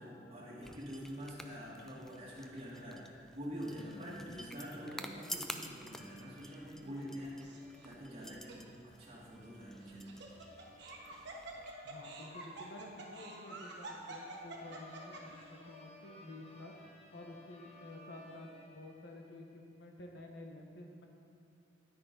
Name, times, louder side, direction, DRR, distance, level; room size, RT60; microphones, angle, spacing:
voice 1, 0.0-7.6 7.8-10.1, equal, 30° right, -8 dB, 2.0 m, -46 dB
sound 1, 0.6-11.7, equal, ahead, 0.4 m, -51 dB
sound 2, 5.8-19.5, left 1 dB, 35° left, 1.2 m, -61 dB
Laughter, 7.4-7.9 8.5-8.6 9.8-15.4, right 2 dB, 60° right, 1.4 m, -48 dB
voice 2, 11.8-16.7 17.1-21.1, left 1 dB, 65° left, 2 dB, 1.1 m, -51 dB
9.8 x 9.7 x 3.9 m, 2.8 s
head